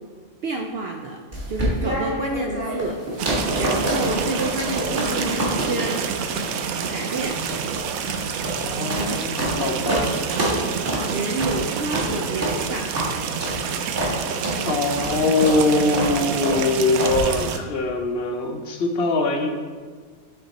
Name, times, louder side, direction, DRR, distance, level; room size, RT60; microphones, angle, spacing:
voice 1, 0.4-1.2 1.5-3.0 3.5-6.0 6.9-7.4 8.9-9.2 9.5-10.0 10.9-12.9, right 3 dB, 65° right, 2 dB, 0.6 m, -29 dB
sound 1, 1.3-9.6 9.9-10.0 10.3-10.6 10.9-11.0 11.4-11.6 11.9-12.1 12.4-12.6 12.9-13.1 13.4-13.6 14.0-14.1 14.4-14.6 15.0-15.1 15.4-15.6 15.9-16.1 16.4-16.6 17.0-17.2, right 1 dB, 40° right, 2.2 m, -26 dB
sound 2, 3.2-17.6, right 7 dB, 85° right, 1.0 m, -28 dB
voice 2, 8.6-10.2 14.6-19.5, left 2 dB, 55° left, 3 dB, 0.8 m, -23 dB
9.2 x 3.8 x 4.1 m, 1.5 s
omnidirectional pair, 1.5 m